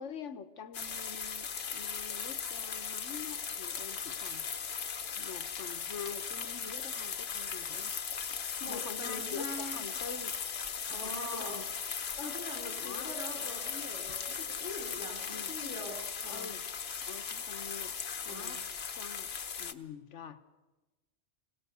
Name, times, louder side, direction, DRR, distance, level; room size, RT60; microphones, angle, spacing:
voice 1, 0.0-4.7 5.2-7.9 8.7-10.3 10.9-11.6 12.2-12.4 12.8-13.1 15.3-15.7 16.2-16.6 17.1-17.9 18.3-19.3 19.6-20.4, left 6 dB, 90° left, 10 dB, 1.4 m, -46 dB
sound 1, 0.7-19.7, left 6 dB, 60° left, 1.2 m, -38 dB
voice 2, 8.6-9.8 10.9-11.6 12.2-16.6 18.2-18.6, left 1 dB, 15° right, 2 dB, 3.1 m, -43 dB
25.5 x 18.0 x 6.9 m, 1.2 s
omnidirectional pair, 1.2 m